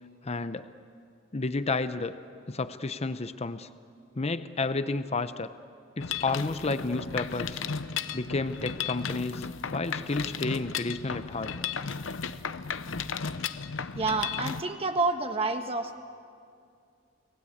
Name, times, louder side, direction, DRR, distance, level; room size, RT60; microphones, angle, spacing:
voice 1, 0.2-0.7 1.3-2.1 2.5-3.7 4.1-5.5 6.0-7.6 8.1-11.5, left 3 dB, 35° left, 12 dB, 0.7 m, -31 dB
Mechanisms, 6.0-14.6, left 6 dB, 75° left, 0.8 m, -34 dB
voice 2, 13.9-16.0, right 3 dB, 30° right, 5 dB, 1.3 m, -29 dB
29.5 x 19.5 x 8.6 m, 2.3 s
head